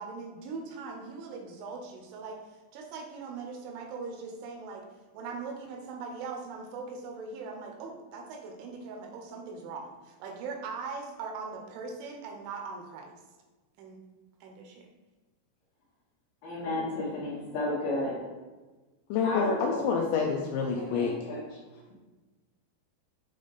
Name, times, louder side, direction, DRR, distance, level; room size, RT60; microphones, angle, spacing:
voice 1, 0.0-4.9 5.1-13.2 13.8-14.0 14.4-14.9, right 4 dB, 80° right, 2 dB, 3.0 m, -40 dB
voice 2, 16.4-18.3 19.2-19.9 20.7-21.6, left 1 dB, 70° left, -7 dB, 2.3 m, -33 dB
voice 3, 19.1-21.1, left 6 dB, 90° left, 0 dB, 2.6 m, -28 dB
8.8 x 3.3 x 3.9 m, 1.2 s
omnidirectional pair, 5.7 m